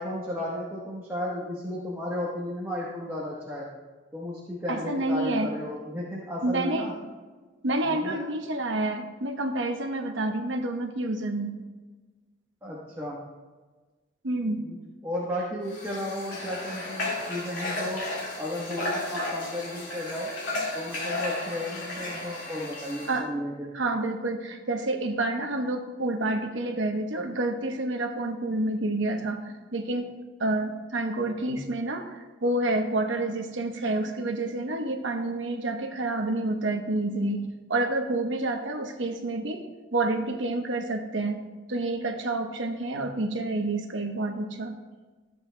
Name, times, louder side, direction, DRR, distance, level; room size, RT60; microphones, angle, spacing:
voice 1, 0.0-3.7 4.1-6.9 7.8-8.2 12.6-13.2 14.6-14.8 15.0-18.0 18.4-20.3 20.7-23.7, left 1 dB, 10° right, -5 dB, 1.1 m, -34 dB
voice 2, 4.7-5.5 6.4-6.9 7.6-11.6 14.2-14.6 23.0-23.3 23.7-30.1 30.4-37.4 37.7-39.6 39.9-41.4 41.7-44.8, right 2 dB, 80° right, 5 dB, 0.9 m, -28 dB
Water / Water tap faucet, 15.7-23.2, left 2 dB, 75° left, 2.7 m, -34 dB
13.5 x 7.8 x 2.2 m, 1.3 s
head